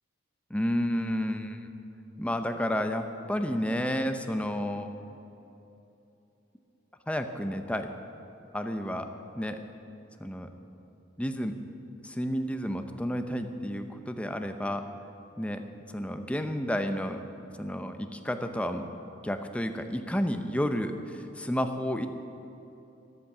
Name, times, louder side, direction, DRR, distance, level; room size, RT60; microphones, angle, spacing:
voice 1, 0.5-1.7 2.2-4.9 7.1-7.9 8.5-9.1 9.4-9.6 10.2-10.5 11.2-11.5 12.0-14.9 15.4-17.2 17.6-18.9 19.2-22.1, equal, 5° left, 7 dB, 0.7 m, -31 dB
13.5 x 11.5 x 6.1 m, 2.9 s
head